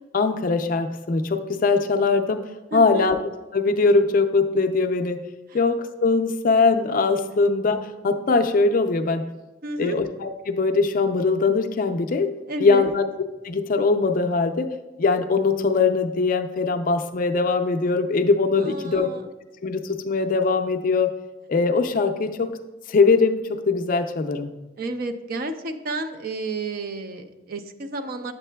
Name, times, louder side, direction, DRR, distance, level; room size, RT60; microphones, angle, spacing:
voice 1, 0.1-2.4 2.7-3.2 3.5-5.2 5.5-9.2 9.8-12.3 12.6-13.0 13.4-14.7 15.0-19.1 19.6-21.1 21.5-22.5 22.9-24.5, left 4 dB, 45° left, 7 dB, 0.4 m, -21 dB
voice 2, 2.7-3.1 9.6-10.0 12.5-12.9 18.6-19.3 24.8-28.3, right 2 dB, 50° right, 8 dB, 0.5 m, -31 dB
8.2 x 7.2 x 2.2 m, 1.0 s
head